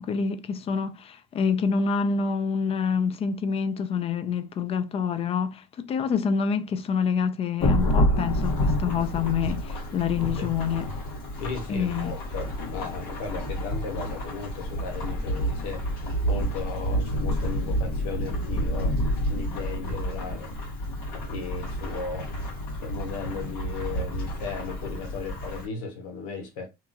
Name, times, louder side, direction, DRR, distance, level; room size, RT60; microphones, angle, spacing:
voice 1, 0.0-10.9 11.7-12.1, left 6 dB, 30° left, 0.4 m, -27 dB
Thunderstorm / Rain, 7.6-25.7, equal, 55° left, 1.5 m, -29 dB
voice 2, 11.4-19.0 19.3-20.5 21.1-22.3 22.8-26.7, left 5 dB, 85° left, 1.0 m, -36 dB
2.9 x 2.3 x 2.5 m
supercardioid pair, 105°, 19 cm